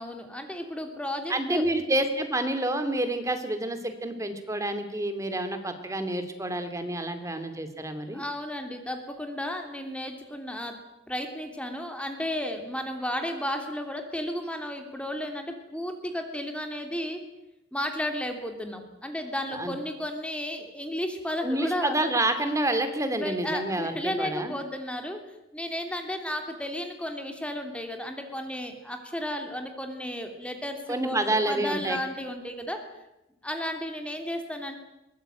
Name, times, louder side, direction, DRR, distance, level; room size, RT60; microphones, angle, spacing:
voice 1, 0.0-1.7 8.1-17.2 17.7-22.0 23.2-25.2 25.5-31.2 31.5-32.9 33.4-34.8, left 1 dB, 5° left, 5 dB, 2.9 m, -33 dB
voice 2, 1.3-8.2 19.5-19.7 21.4-24.5 30.9-32.0, right 1 dB, 15° right, 8 dB, 2.7 m, -28 dB
23.0 x 19.0 x 9.1 m, 0.90 s
head